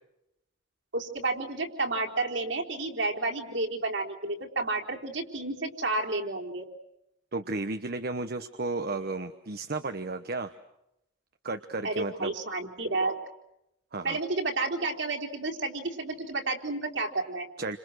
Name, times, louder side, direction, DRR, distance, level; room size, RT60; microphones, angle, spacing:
voice 1, 0.9-6.6 11.8-13.1 14.0-17.5, right 2 dB, 70° right, 2 dB, 3.8 m, -31 dB
voice 2, 7.3-10.5 11.4-12.3 13.9-14.2 17.6-17.8, right 3 dB, 55° right, 8 dB, 1.1 m, -33 dB
29.5 x 26.5 x 6.4 m, 0.84 s
head